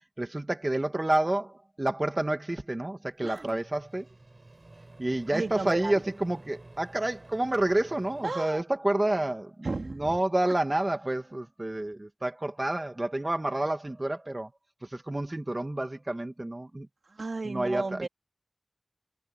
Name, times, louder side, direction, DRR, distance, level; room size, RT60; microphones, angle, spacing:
voice 1, 0.2-4.1 5.0-14.5 14.8-16.9 17.4-18.1, right 1 dB, 30° right, 2.2 m, -29 dB
Microwave oven, 3.2-8.3, right 2 dB, 50° right, 4.8 m, -52 dB
voice 2, 3.2-3.6 5.3-5.9 8.2-8.6 9.6-10.1 17.1-18.1, right 3 dB, 75° right, 3.7 m, -34 dB
wide cardioid pair, 70°, 0 cm